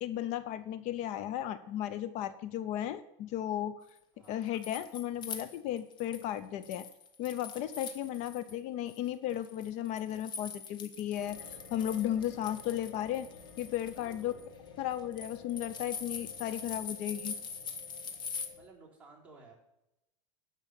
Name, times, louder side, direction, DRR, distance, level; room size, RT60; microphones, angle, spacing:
voice 1, 0.0-3.8 4.3-6.9 7.2-11.4 11.7-13.3 13.6-14.3 14.8-17.3, left 11 dB, 45° left, 13 dB, 0.7 m, -35 dB
sound 1, 4.2-6.3 6.6-8.5 8.9-18.5, left 5 dB, 30° left, 1.3 m, -44 dB
sound 2, 11.1-18.7, left 6 dB, 70° left, 3.6 m, -53 dB
voice 2, 14.0-14.4 18.5-19.5, right 3 dB, 10° right, -4 dB, 4.0 m, -56 dB
11.0 x 5.4 x 8.3 m, 0.88 s
supercardioid pair, 135°, 16 cm